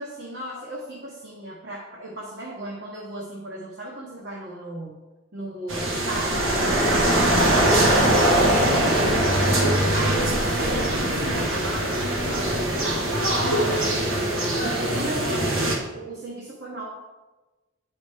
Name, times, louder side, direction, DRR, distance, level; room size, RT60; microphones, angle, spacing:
voice 1, 0.0-5.0 5.3-9.3 9.9-12.0 12.3-13.1 13.7-14.0 14.6-16.8, right 2 dB, 55° right, -3 dB, 1.1 m, -35 dB
sound 1, 5.7-15.8, right 1 dB, 90° right, 1.4 m, -22 dB
9.4 x 5.0 x 3.5 m, 1.1 s
head